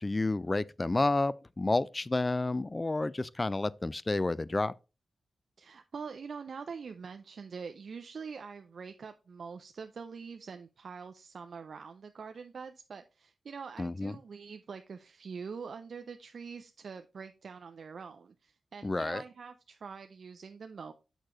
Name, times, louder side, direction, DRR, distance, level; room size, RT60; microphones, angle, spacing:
voice 1, 0.0-4.7 13.8-14.1 18.8-19.2, left 2 dB, 25° left, 0.3 m, -30 dB
voice 2, 5.6-20.9, right 5 dB, 65° right, 0.4 m, -44 dB
6.6 x 6.1 x 3.0 m
cardioid pair, 70°, 0 cm